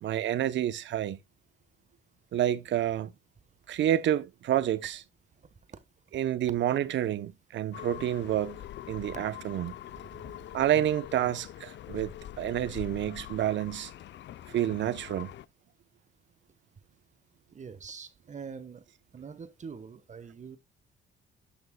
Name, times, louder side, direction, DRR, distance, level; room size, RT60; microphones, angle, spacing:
voice 1, 0.0-1.2 2.3-3.1 3.7-5.0 6.1-8.6 8.9-9.7 10.5-13.9 14.5-15.3, right 11 dB, 70° right, 0.8 m, -29 dB
sound 1, 7.7-15.5, left 12 dB, 65° left, 0.6 m, -44 dB
voice 2, 17.5-18.9 19.1-20.6, right 6 dB, 35° right, 1.3 m, -44 dB
11.0 x 6.6 x 2.3 m
cardioid pair, 90°, 20 cm